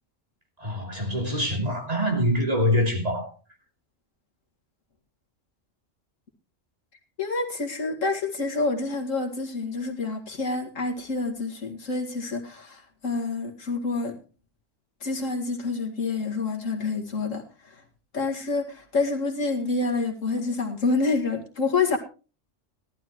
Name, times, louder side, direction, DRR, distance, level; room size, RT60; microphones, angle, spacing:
voice 1, 0.6-3.3, equal, 30° right, 3.1 m, -25 dB
voice 2, 7.2-14.2 15.0-17.8 18.1-22.0, left 3 dB, 85° left, 2.5 m, -28 dB
17.5 x 12.0 x 3.0 m
omnidirectional pair, 1.3 m